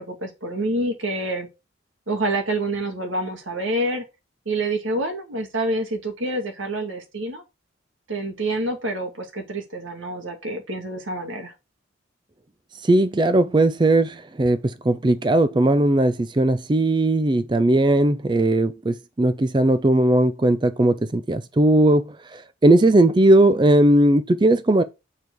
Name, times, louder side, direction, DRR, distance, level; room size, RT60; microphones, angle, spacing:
voice 1, 0.0-1.5 2.1-4.0 4.5-7.4 8.1-11.5, right 1 dB, 90° right, 2.1 m, -27 dB
voice 2, 12.8-24.8, right 1 dB, 25° right, 0.4 m, -18 dB
7.3 x 4.7 x 4.6 m
head